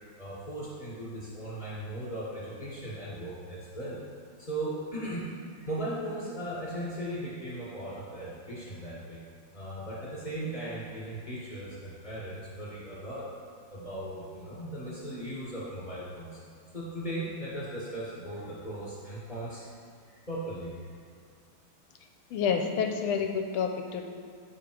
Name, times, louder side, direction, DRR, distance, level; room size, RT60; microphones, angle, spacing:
voice 1, 0.2-4.0 4.4-9.2 9.5-13.2 13.7-16.4 16.7-19.7 20.1-20.7, right 1 dB, 25° left, -9 dB, 1.5 m, -37 dB
voice 2, 22.3-24.1, left 6 dB, 80° left, 4 dB, 1.4 m, -29 dB
7.6 x 3.7 x 4.7 m, 2.2 s
omnidirectional pair, 2.4 m